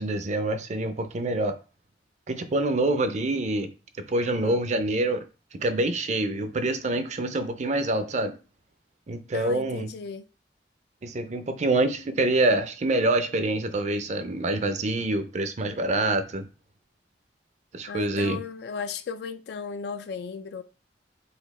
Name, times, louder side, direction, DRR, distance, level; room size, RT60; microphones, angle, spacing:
voice 1, 0.0-1.6 2.3-3.7 4.1-5.2 5.5-8.3 9.1-9.9 11.0-16.5 17.7-18.4, right 2 dB, 40° right, 0.5 m, -26 dB
voice 2, 4.2-4.6 9.3-10.2 17.9-20.6, left 5 dB, 65° left, 0.3 m, -36 dB
4.1 x 2.7 x 4.1 m
head